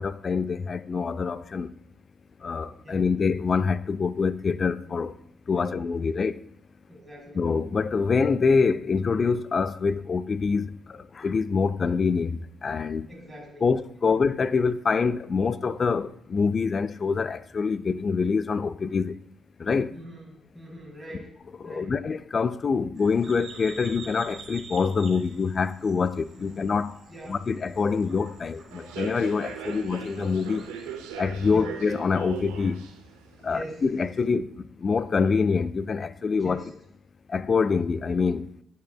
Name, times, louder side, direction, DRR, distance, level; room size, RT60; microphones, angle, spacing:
voice 1, 0.0-1.7 2.4-5.1 5.5-6.4 7.3-13.1 13.6-19.2 19.6-19.9 21.6-27.0 27.3-30.7 31.1-32.8 33.4-36.6 37.3-38.5, left 5 dB, 50° left, 0.3 m, -25 dB
voice 2, 6.9-7.4 13.1-13.7 14.0-14.2 19.9-21.3 21.6-22.0 26.4-26.5 27.1-27.4 29.6-29.8 31.5-31.7 33.5-33.8 36.4-36.7, equal, 5° right, 2.0 m, -43 dB
sound 1, 23.0-31.1, right 5 dB, 55° right, 0.9 m, -47 dB
Human voice / Subway metro underground, 28.7-34.3, right 7 dB, 90° right, 0.6 m, -40 dB
9.0 x 5.1 x 2.3 m
hypercardioid pair, 45°, 0 cm